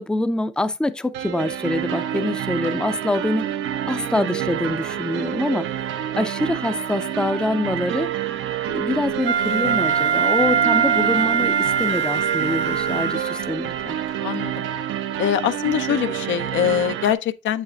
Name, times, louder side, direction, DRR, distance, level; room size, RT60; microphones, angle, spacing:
voice 1, 0.0-3.5 3.9-5.7 6.2-8.1 8.7-14.0, left 2 dB, 5° left, 0.5 m, -25 dB
sound 1, 1.1-17.1, right 10 dB, 85° right, 0.7 m, -28 dB
Wind instrument woodwind instrument, 9.2-13.5, right 7 dB, 65° right, 1.0 m, -22 dB
voice 2, 14.2-14.6 15.2-17.6, left 10 dB, 70° left, 0.6 m, -23 dB
7.9 x 6.7 x 2.3 m
cardioid pair, 90°, 20 cm